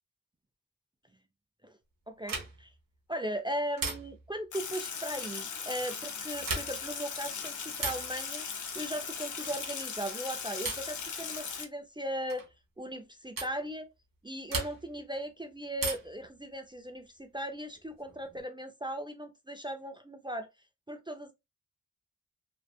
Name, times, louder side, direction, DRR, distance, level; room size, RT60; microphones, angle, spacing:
voice 1, 2.1-2.7 3.1-8.5 8.7-12.5 12.8-13.9 14.2-20.5 20.9-21.3, equal, 15° right, 0.4 m, -38 dB
sound 1, 2.2-2.8 3.8-4.4 6.3-7.0 7.8-8.2 9.4-9.7 10.6-11.0 12.3-12.5 13.4-13.6 14.5-15.0 15.8-16.3 17.7-18.4, right 4 dB, 75° right, 0.8 m, -37 dB
Sink (filling or washing), 4.5-11.6, left 6 dB, 60° left, 0.6 m, -38 dB
2.7 x 2.4 x 2.3 m
cardioid pair, 50°, 34 cm